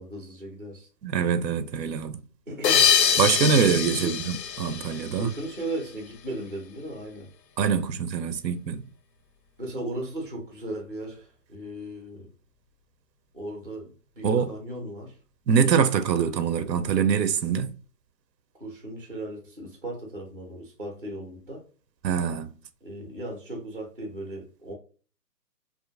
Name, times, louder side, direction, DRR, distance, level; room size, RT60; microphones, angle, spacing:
voice 1, 0.0-0.9 2.5-2.9 4.0-4.2 5.1-7.3 9.6-12.3 13.3-15.2 18.6-21.6 22.8-24.7, right 1 dB, 35° right, 0.4 m, -36 dB
voice 2, 1.0-2.2 3.2-5.3 7.6-8.8 14.2-14.5 15.5-17.7 22.0-22.5, right 6 dB, 85° right, 0.6 m, -24 dB
sound 1, 2.6-5.7, left 8 dB, 85° left, 0.6 m, -24 dB
2.5 x 2.5 x 2.5 m
hypercardioid pair, 175°, 49 cm